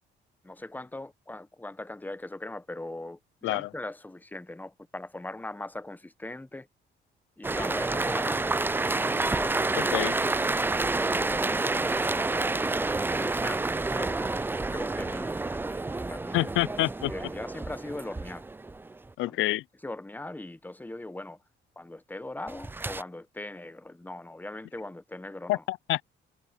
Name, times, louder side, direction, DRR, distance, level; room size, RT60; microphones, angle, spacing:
voice 1, 0.4-6.7 7.4-8.7 9.3-9.9 10.8-16.5 17.1-18.5 19.3-19.4 19.8-21.4 21.8-25.6, left 2 dB, 10° left, 1.0 m, -40 dB
sound 1, 7.4-19.0 22.5-23.0, right 3 dB, 10° right, 0.3 m, -29 dB
voice 2, 16.3-17.1 19.2-19.6 25.5-26.0, left 17 dB, 85° left, 0.4 m, -27 dB
cardioid pair, 90°, 20 cm